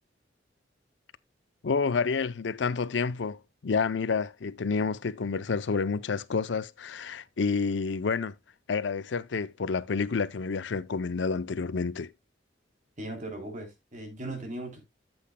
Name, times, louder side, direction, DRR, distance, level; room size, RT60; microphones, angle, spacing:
voice 1, 1.6-8.3 8.7-12.1, left 5 dB, 70° left, 0.5 m, -29 dB
voice 2, 13.0-14.8, right 1 dB, 40° right, 3.1 m, -38 dB
12.0 x 7.9 x 2.2 m
head